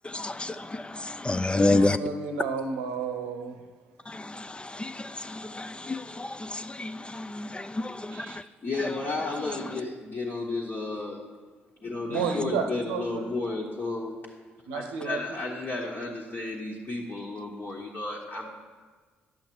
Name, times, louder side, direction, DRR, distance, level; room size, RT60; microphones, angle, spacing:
voice 1, 0.1-2.0 4.1-4.2 4.5-8.3, left 2 dB, 20° left, 0.4 m, -29 dB
voice 2, 1.5-3.6 8.1-8.4 12.1-13.3 14.7-15.4, right 5 dB, 75° right, 0.7 m, -32 dB
voice 3, 8.6-11.2 11.8-14.1 14.7-18.5, left 3 dB, 40° left, 1.4 m, -33 dB
10.5 x 7.7 x 3.1 m
figure-of-eight pair, 40°, 5 cm